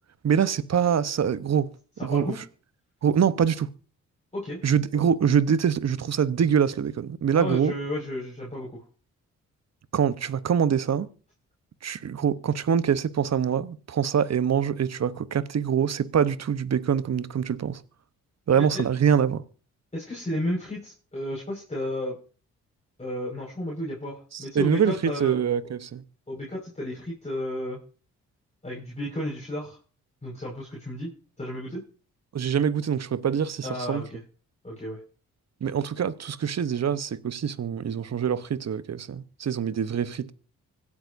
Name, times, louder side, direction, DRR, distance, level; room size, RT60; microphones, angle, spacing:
voice 1, 0.2-1.7 2.0-2.3 3.0-3.7 4.6-7.7 9.9-11.1 11.8-17.8 18.5-19.4 24.3-26.0 32.3-34.0 35.6-40.3, right 8 dB, 45° right, 1.0 m, -24 dB
voice 2, 2.0-2.4 4.3-4.6 4.9-5.0 7.4-8.8 18.7-18.8 19.9-22.2 23.0-25.4 26.3-27.8 28.6-29.8 30.2-31.1 31.4-31.8 33.6-34.2 34.6-35.0, left 1 dB, 20° left, 5.2 m, -33 dB
25.0 x 8.4 x 2.6 m
hypercardioid pair, 45°, 36 cm